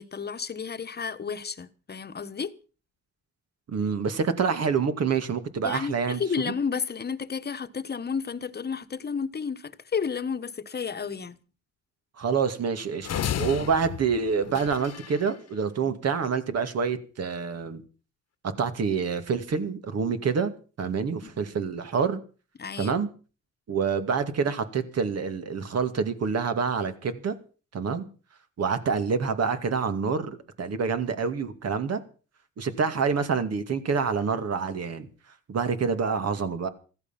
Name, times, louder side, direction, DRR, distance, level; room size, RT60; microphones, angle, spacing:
voice 1, 0.0-2.5 5.6-11.4 15.9-16.0 20.8-20.9 21.2-21.3 22.6-22.9, left 6 dB, 35° left, 1.3 m, -32 dB
voice 2, 3.7-6.2 12.2-13.1 13.4-17.8 18.4-20.5 20.8-22.2 22.8-23.1 23.7-27.3 27.7-28.0 28.6-32.0 32.6-35.1 35.5-36.7, right 5 dB, 55° right, 2.4 m, -27 dB
sound 1, 13.0-15.3, left 10 dB, 60° left, 1.3 m, -32 dB
15.0 x 15.0 x 5.9 m
cardioid pair, 90°, 30 cm